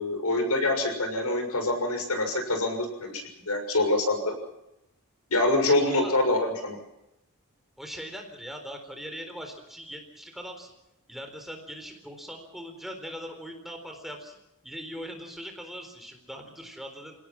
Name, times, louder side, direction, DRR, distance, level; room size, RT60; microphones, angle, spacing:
voice 1, 0.0-4.3 5.3-6.8, left 2 dB, 90° left, 6 dB, 6.4 m, -25 dB
voice 2, 7.8-10.7 11.1-14.4 14.6-17.1, equal, ahead, 4 dB, 4.0 m, -40 dB
29.5 x 18.0 x 6.0 m, 0.89 s
head